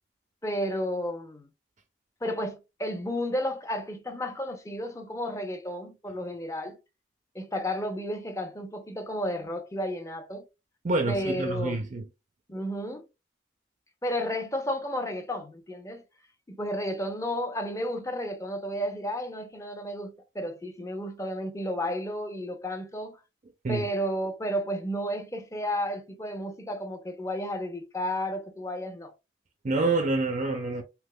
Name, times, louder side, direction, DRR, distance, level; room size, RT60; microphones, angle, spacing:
voice 1, 0.4-1.5 2.2-6.8 7.3-10.5 11.1-11.8 12.5-13.0 14.0-16.0 16.5-23.2 23.7-29.1, equal, 15° left, 0.6 m, -32 dB
voice 2, 10.8-12.1 23.6-23.9 29.6-30.8, right 3 dB, 40° right, 0.4 m, -27 dB
3.5 x 2.8 x 2.2 m
head